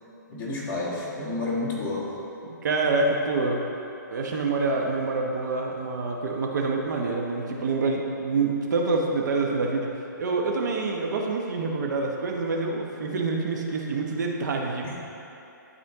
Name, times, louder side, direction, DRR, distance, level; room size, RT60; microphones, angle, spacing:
voice 1, 0.3-2.1, left 2 dB, 20° left, -7 dB, 1.6 m, -30 dB
voice 2, 2.4-3.6 4.1-9.9 10.2-14.9, right 3 dB, 60° right, 1 dB, 0.9 m, -26 dB
12.0 x 4.3 x 3.5 m, 2.9 s
hypercardioid pair, 145°, 11 cm